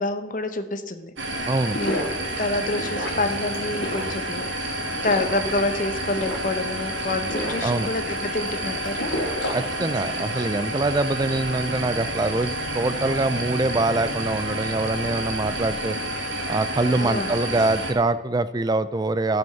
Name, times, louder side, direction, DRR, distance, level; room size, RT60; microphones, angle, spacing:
voice 1, 0.0-1.5 1.8-2.0 2.4-9.1 17.0-17.4, left 2 dB, 45° left, 8 dB, 0.9 m, -28 dB
sound 1, 1.2-17.9, right 1 dB, 80° right, 1.7 m, -30 dB
Gulping Water., 1.5-10.3, left 1 dB, 75° left, 2.1 m, -33 dB
voice 2, 1.5-1.8 7.6-7.9 9.5-16.0 16.5-19.4, right 2 dB, 20° right, 13 dB, 0.4 m, -24 dB
Motor vehicle (road) / Accelerating revving vroom, 10.9-15.8, right 1 dB, 55° right, 0.8 m, -41 dB
14.5 x 5.3 x 5.8 m, 1.2 s
head